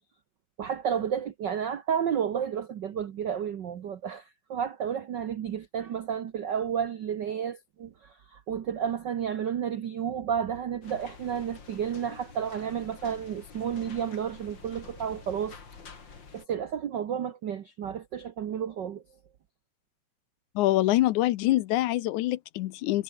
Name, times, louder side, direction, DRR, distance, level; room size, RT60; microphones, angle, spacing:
voice 1, 0.6-15.6 16.3-19.0, right 8 dB, 80° right, 0.9 m, -31 dB
sound 1, 10.8-16.5, left 5 dB, 40° left, 3.3 m, -48 dB
voice 2, 20.6-23.0, left 16 dB, 85° left, 2.2 m, -25 dB
omnidirectional pair, 3.5 m